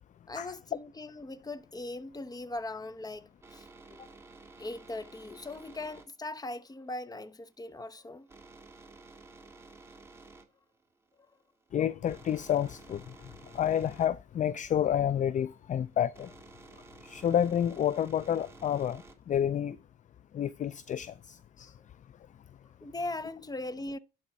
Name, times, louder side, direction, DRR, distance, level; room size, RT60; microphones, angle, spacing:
voice 1, 0.3-4.1 4.6-8.3 21.8-21.9 22.8-24.0, left 2 dB, 20° left, 0.8 m, -40 dB
sound 1, 2.8-19.4, right 3 dB, 15° right, 1.7 m, -54 dB
voice 2, 11.7-13.0 13.5-16.3 17.0-19.0 19.3-19.8 20.3-21.7, left 9 dB, 40° left, 0.4 m, -29 dB
11.5 x 4.4 x 4.1 m
cardioid pair, 90°, 20 cm